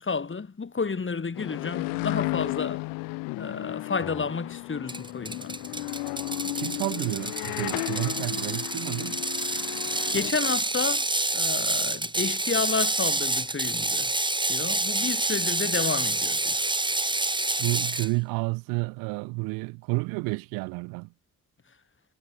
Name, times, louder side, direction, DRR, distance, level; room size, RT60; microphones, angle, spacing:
voice 1, 0.0-2.8 3.4-5.8 10.1-14.1 14.5-16.6, left 4 dB, 35° left, 3.5 m, -31 dB
sound 1, 1.4-10.3, left 26 dB, 85° left, 0.8 m, -33 dB
Ratchet pawl, 4.9-18.1, right 2 dB, 15° right, 2.0 m, -28 dB
voice 2, 6.6-9.2 17.6-21.1, right 28 dB, 90° right, 0.9 m, -30 dB
hypercardioid pair, 50°, 33 cm